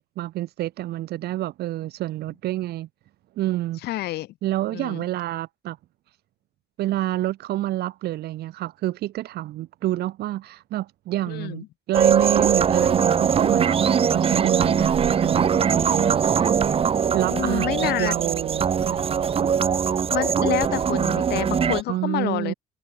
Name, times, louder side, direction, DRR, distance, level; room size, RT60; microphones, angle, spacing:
voice 1, 0.0-2.9 3.4-3.8 4.4-5.8 6.8-16.6 17.1-19.5 21.9-22.5, right 15 dB, 70° right, 1.8 m, -28 dB
voice 2, 3.8-4.3 4.7-5.0 11.3-11.7 17.3-18.1 20.1-22.5, left 16 dB, 75° left, 1.3 m, -28 dB
sound 1, 11.9-21.8, right 7 dB, 35° right, 0.9 m, -21 dB
cardioid pair, 110°, 17 cm